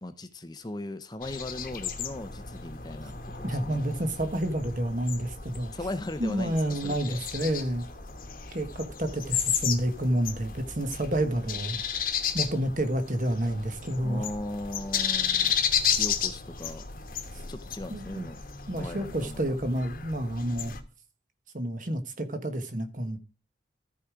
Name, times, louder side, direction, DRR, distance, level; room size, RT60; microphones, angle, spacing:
voice 1, 0.0-3.8 5.7-7.2 14.0-15.5 15.9-16.8 17.5-18.4 18.8-19.4, left 1 dB, 20° left, 0.7 m, -38 dB
sound 1, 1.2-20.8, left 7 dB, 50° left, 1.2 m, -33 dB
voice 2, 3.4-5.7 6.2-7.8 8.5-12.0 12.3-14.3 15.9-16.0 17.9-18.3 18.7-20.7 21.5-23.2, right 1 dB, 45° right, 1.3 m, -29 dB
13.5 x 5.0 x 5.0 m
head